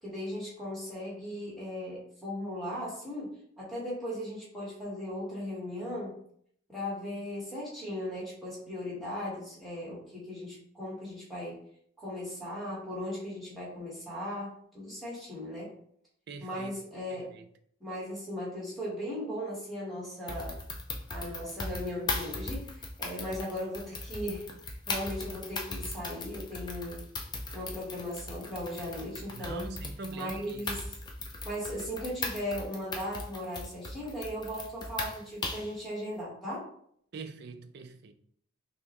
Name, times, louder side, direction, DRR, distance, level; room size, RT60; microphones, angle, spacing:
voice 1, 0.0-6.2 6.7-11.6 12.0-15.7 16.4-17.2 17.8-20.6 21.1-24.5 24.9-27.0 27.5-29.7 30.1-30.9 31.4-36.7, equal, ahead, 1.3 m, -37 dB
voice 2, 16.3-16.7 17.1-17.5 29.3-30.7 37.1-38.1, right 4 dB, 50° right, 0.3 m, -44 dB
sound 1, 20.3-35.7, left 3 dB, 20° left, 0.4 m, -38 dB
5.5 x 2.1 x 3.0 m
head